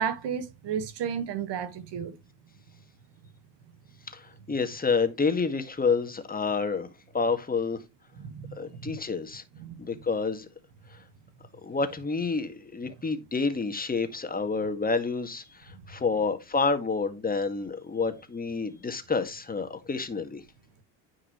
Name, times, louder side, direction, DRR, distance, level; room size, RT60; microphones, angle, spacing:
voice 1, 0.0-2.1 8.2-9.0 9.6-9.8, right 7 dB, 55° right, 1.6 m, -33 dB
voice 2, 4.1-6.9 7.1-7.8 8.5-9.4 9.8-10.5 10.9-11.0 11.6-20.4, left 4 dB, 15° left, 1.9 m, -29 dB
10.0 x 4.8 x 3.1 m
supercardioid pair, 85°, 50 cm